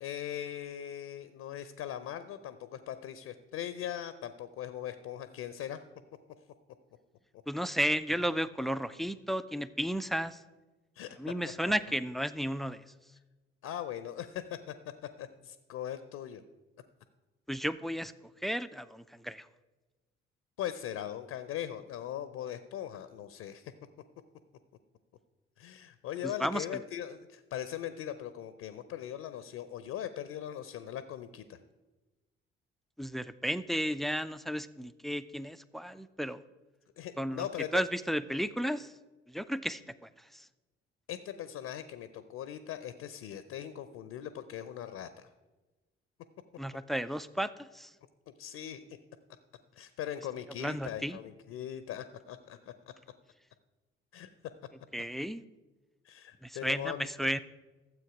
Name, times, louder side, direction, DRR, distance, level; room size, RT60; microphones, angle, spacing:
voice 1, 0.0-5.8 11.0-11.3 13.6-14.7 15.2-16.4 20.6-23.7 25.6-31.6 37.0-37.9 41.1-45.3 48.4-49.0 49.8-52.7 54.1-54.3 56.0-57.1, left 10 dB, 50° left, 12 dB, 0.6 m, -40 dB
voice 2, 7.5-10.4 11.2-12.8 17.5-18.1 18.4-19.4 26.4-26.6 33.0-36.4 37.2-37.5 37.7-38.9 39.3-39.8 46.6-47.9 50.6-51.2 54.9-55.4 56.4-57.4, equal, ahead, 15 dB, 0.3 m, -33 dB
13.0 x 7.7 x 4.9 m, 1.2 s
figure-of-eight pair, 45°, 32 cm